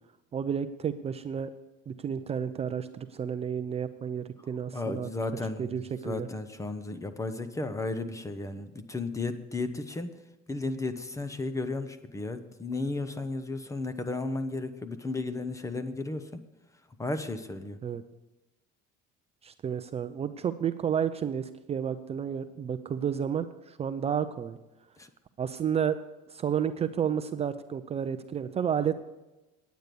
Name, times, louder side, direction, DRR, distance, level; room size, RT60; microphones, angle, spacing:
voice 1, 0.3-1.5 1.9-5.1 5.6-6.3 17.8-18.0 19.4-24.6 25.4-26.0 26.3-29.1, right 8 dB, 30° right, 11 dB, 0.5 m, -31 dB
voice 2, 4.7-5.7 6.0-10.1 10.5-16.4 17.0-17.8 25.0-25.1, left 3 dB, 15° left, 11 dB, 0.8 m, -34 dB
9.5 x 9.2 x 6.8 m, 1.0 s
cardioid pair, 120°, 21 cm